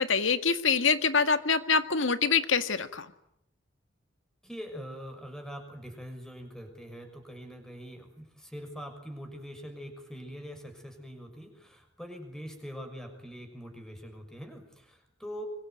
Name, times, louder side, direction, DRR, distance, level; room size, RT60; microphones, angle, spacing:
voice 1, 0.0-3.1, left 5 dB, 90° left, 9 dB, 1.8 m, -25 dB
voice 2, 4.4-15.4, equal, 5° left, 5 dB, 6.2 m, -43 dB
25.0 x 24.5 x 9.3 m, 0.77 s
head